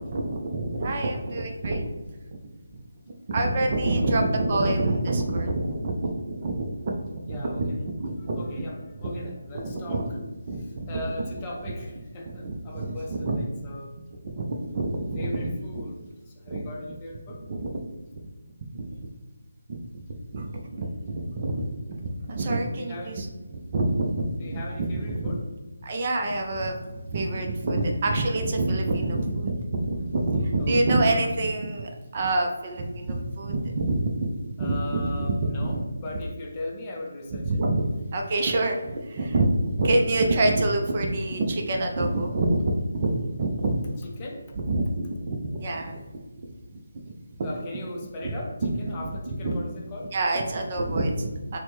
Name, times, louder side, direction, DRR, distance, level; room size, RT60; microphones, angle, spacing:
voice 1, 0.0-1.9 2.3-2.4 3.3-7.7 8.0-8.4 9.0-9.1 9.5-10.1 10.5-11.0 12.4-13.4 14.2-15.5 16.5-16.6 17.5-17.8 18.7-19.1 19.7-19.8 20.3-23.3 23.5-25.3 25.8-34.3 34.6-35.8 37.4-43.7 44.7-46.0 46.7-46.8 49.3-49.6 50.1-51.6, right 2 dB, 40° right, 2 dB, 0.4 m, -26 dB
voice 2, 7.3-7.9 8.2-10.1 10.5-13.9 15.2-17.5 22.8-23.2 24.3-25.4 30.6-31.0 34.6-37.6 44.0-44.5 47.4-50.1, left 1 dB, 25° left, -1 dB, 0.5 m, -39 dB
4.1 x 2.1 x 3.0 m, 1.2 s
figure-of-eight pair, 155°, 0 cm